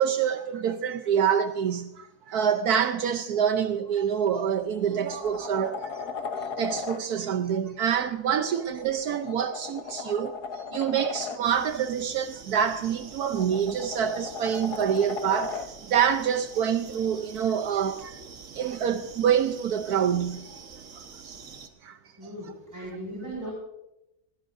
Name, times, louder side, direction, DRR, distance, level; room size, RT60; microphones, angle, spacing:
voice 1, 0.0-6.3 6.6-15.6 15.9-18.2 18.5-20.4 21.0-21.4 21.8-22.3 22.8-22.9, right 8 dB, 75° right, 1.3 m, -26 dB
sound 1, 4.1-4.3 4.7-7.0 8.7-11.4 12.9-15.7 18.0-18.1, left 5 dB, 80° left, 1.7 m, -37 dB
sound 2, 11.4-21.7, right 5 dB, 55° right, 1.6 m, -46 dB
voice 2, 22.2-23.5, right 1 dB, 10° right, 5.1 m, -37 dB
20.5 x 17.5 x 2.6 m
omnidirectional pair, 1.7 m